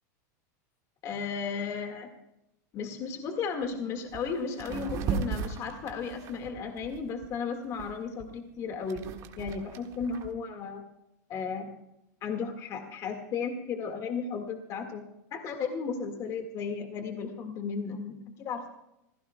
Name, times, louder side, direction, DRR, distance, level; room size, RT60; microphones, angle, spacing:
voice 1, 1.0-2.1 2.7-9.1 9.4-10.8 11.3-11.7 12.2-15.0 15.3-18.7, left 5 dB, 35° left, 5 dB, 1.8 m, -34 dB
sound 1, 3.6-3.7 4.1-4.3 4.6-7.3 7.8-10.3, right 6 dB, 35° right, 1.6 m, -36 dB
28.5 x 16.0 x 2.2 m, 0.85 s
supercardioid pair, 155°, 9 cm